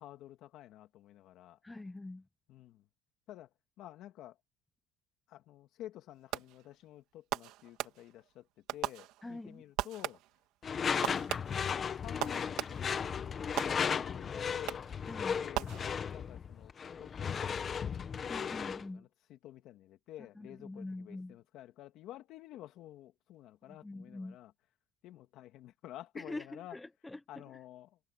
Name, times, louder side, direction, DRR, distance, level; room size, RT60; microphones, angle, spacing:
voice 1, 0.0-1.6 2.5-2.8 3.3-3.5 3.8-4.4 5.3-8.5 8.7-10.2 11.7-13.1 13.5-14.9 15.3-16.7 17.0-18.3 18.6-24.5 25.0-26.8 27.3-28.0, left 13 dB, 55° left, 2.4 m, -51 dB
voice 2, 1.6-2.3 9.2-9.6 15.1-15.4 18.3-19.1 20.3-21.4 23.6-24.4 26.1-27.4, left 2 dB, 10° left, 1.1 m, -44 dB
Fireworks, 6.3-6.8 7.3-8.3 8.7-9.5 9.8-10.5 11.0-13.0 13.6-14.2 14.7-15.1 15.5-16.3, right 16 dB, 65° right, 2.5 m, -39 dB
Door / Screech, 10.6-18.9, left 7 dB, 25° left, 1.2 m, -35 dB
cardioid pair, 150°, 0 cm